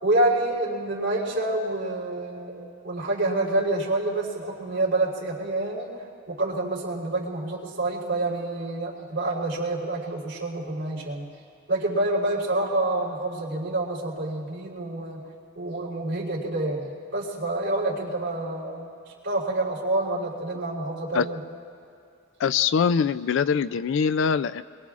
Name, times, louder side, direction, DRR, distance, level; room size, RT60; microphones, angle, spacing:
voice 1, 0.0-11.3 11.7-15.2 15.6-18.9 19.2-21.4, right 2 dB, 55° right, -7 dB, 3.6 m, -27 dB
voice 2, 22.4-24.6, left 6 dB, 60° left, 15 dB, 0.3 m, -23 dB
25.5 x 22.0 x 2.4 m, 2.5 s
head